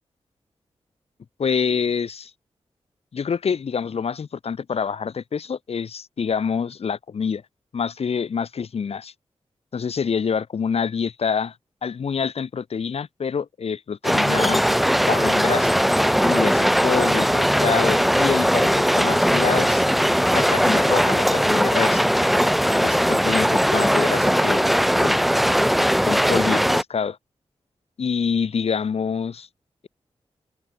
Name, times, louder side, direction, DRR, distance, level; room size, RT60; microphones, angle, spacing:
voice 1, 1.4-2.3 3.1-7.4 7.7-9.1 9.7-11.6 11.8-14.6 15.0-15.8 16.2-19.8 20.3-22.0 22.8-24.7 25.0-25.2 26.0-27.2 28.0-29.5, left 6 dB, 65° left, 2.2 m, -26 dB
sound 1, 14.0-26.8, equal, ahead, 1.2 m, -19 dB
open air
wide cardioid pair, 100°, 11 cm